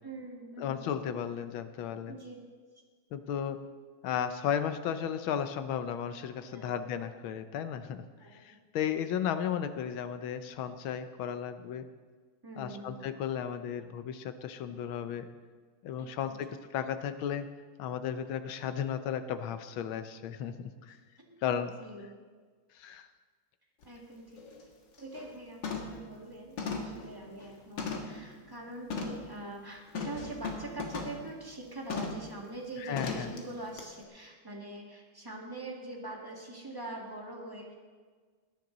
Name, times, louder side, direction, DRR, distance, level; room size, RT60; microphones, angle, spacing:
voice 1, 0.0-0.9 2.1-2.4 6.5-6.8 8.2-8.4 12.4-13.1 16.0-16.4 20.9-21.4 21.7-22.1 23.8-24.4 25.0-37.7, right 2 dB, 10° right, -2 dB, 2.0 m, -44 dB
voice 2, 0.6-2.2 3.1-3.6 4.0-8.0 8.3-11.8 12.6-15.2 15.8-17.5 17.8-21.0 21.4-21.7 22.8-23.1 32.8-33.3, left 8 dB, 90° left, 10 dB, 1.6 m, -34 dB
sound 1, 23.8-23.9 24.4-24.6 25.0-25.3 25.6-26.0 26.6-28.2 28.9-29.3 29.9-31.2 31.9-32.3 33.0-33.4 33.8-33.9, left 4 dB, 65° left, 2.2 m, -37 dB
20.0 x 10.5 x 4.0 m, 1.5 s
omnidirectional pair, 2.2 m